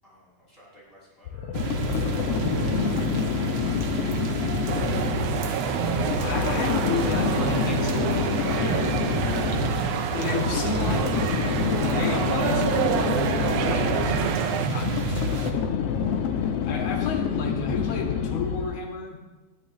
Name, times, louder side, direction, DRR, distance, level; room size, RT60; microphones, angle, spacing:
voice 1, 0.0-1.6 1.9-3.1 3.6-5.0 9.9-10.2, left 1 dB, 15° left, -6 dB, 6.1 m, -52 dB
sound 1, 1.3-18.9, left 8 dB, 80° left, 1.3 m, -28 dB
sound 2, 1.5-15.5, right 4 dB, 55° right, 1.6 m, -31 dB
sound 3, 4.7-14.7, right 8 dB, 75° right, 2.1 m, -28 dB
voice 2, 6.1-9.7 10.1-11.3 11.8-15.9 16.7-19.2, left 3 dB, 50° left, 1 dB, 2.6 m, -32 dB
21.5 x 12.5 x 3.1 m, 1.1 s
omnidirectional pair, 4.0 m